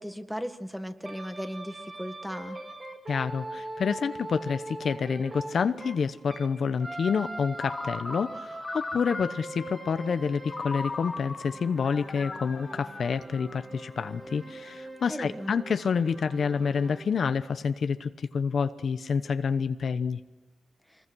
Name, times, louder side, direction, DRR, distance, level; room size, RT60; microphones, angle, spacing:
voice 1, 0.0-2.6 15.1-15.6, equal, ahead, 7 dB, 1.7 m, -36 dB
sound 1, 1.0-6.5 6.8-17.1, right 2 dB, 30° right, 3.6 m, -42 dB
voice 2, 3.1-20.2, left 6 dB, 65° left, 10 dB, 1.0 m, -28 dB
Ringtone, 7.6-9.7 10.5-13.8, left 3 dB, 30° left, 2.3 m, -38 dB
25.5 x 21.0 x 6.3 m, 1.2 s
cardioid pair, 100°, 0 cm